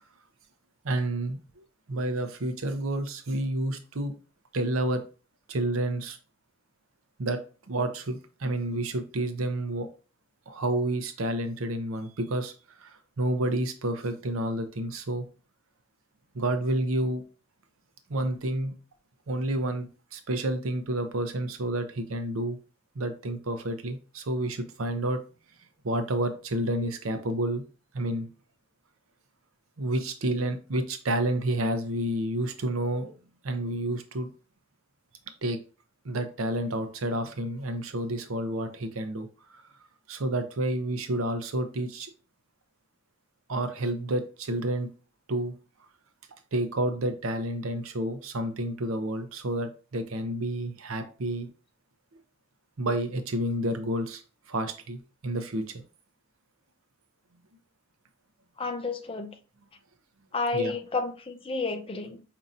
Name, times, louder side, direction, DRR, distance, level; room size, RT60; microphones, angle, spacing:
voice 1, 0.8-4.1 4.5-5.0 5.5-6.2 7.2-7.4 7.7-9.9 10.5-15.3 16.3-17.2 18.1-18.7 19.3-22.6 22.9-25.2 25.8-27.6 27.9-28.3 29.8-33.1 33.4-34.3 35.4-35.6 36.0-39.6 40.1-42.1 43.5-44.9 45.3-45.6 46.5-51.5 52.8-54.2 54.5-55.8 60.5-60.7, right 1 dB, 80° right, 0.7 m, -30 dB
voice 2, 58.6-59.4 60.3-62.2, left 3 dB, 25° left, 0.5 m, -31 dB
5.2 x 2.8 x 2.5 m
head